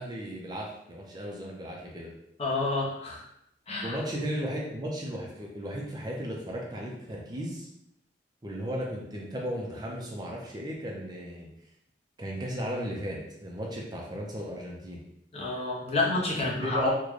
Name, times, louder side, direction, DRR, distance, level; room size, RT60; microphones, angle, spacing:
voice 1, 0.0-2.1 3.8-7.7 8.4-11.5 12.2-15.0 16.6-16.9, equal, 20° right, -2 dB, 0.5 m, -35 dB
voice 2, 2.4-3.2 3.7-4.0 15.3-16.9, left 2 dB, 35° left, -4 dB, 0.7 m, -29 dB
3.7 x 2.2 x 3.1 m, 0.79 s
head